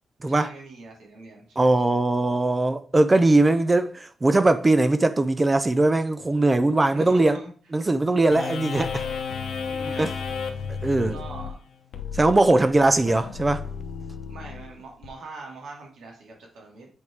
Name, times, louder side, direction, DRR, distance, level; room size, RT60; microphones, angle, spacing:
voice 1, 0.3-2.0 6.9-7.5 9.7-10.1 11.1-11.6 12.5-12.7 14.3-16.9, right 3 dB, 80° right, 2.5 m, -42 dB
voice 2, 1.6-7.4 7.7-9.0 10.0-10.1 10.8-11.2 12.1-13.6, right 2 dB, 15° right, 0.4 m, -20 dB
sound 1, 8.3-15.1, left 6 dB, 85° left, 1.1 m, -33 dB
8.0 x 4.6 x 3.5 m
wide cardioid pair, 175°, 0 cm